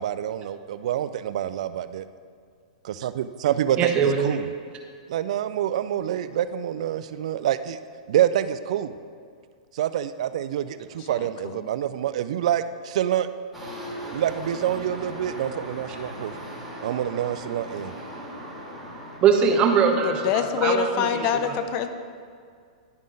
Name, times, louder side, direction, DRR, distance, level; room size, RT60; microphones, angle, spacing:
voice 1, 0.0-2.0 2.8-3.9 4.2-4.5 5.1-7.8 8.1-8.9 9.8-13.3 14.1-16.3 16.8-17.9, right 11 dB, 65° right, 12 dB, 0.4 m, -26 dB
voice 2, 3.8-4.4 19.2-21.6, right 6 dB, 30° right, 3 dB, 0.8 m, -22 dB
voice 3, 11.1-11.6 20.0-21.9, left 8 dB, 45° left, 9 dB, 0.5 m, -25 dB
sound 1, 13.5-19.2, equal, ahead, 1.9 m, -38 dB
10.5 x 3.6 x 3.9 m, 2.1 s
hypercardioid pair, 125°, 4 cm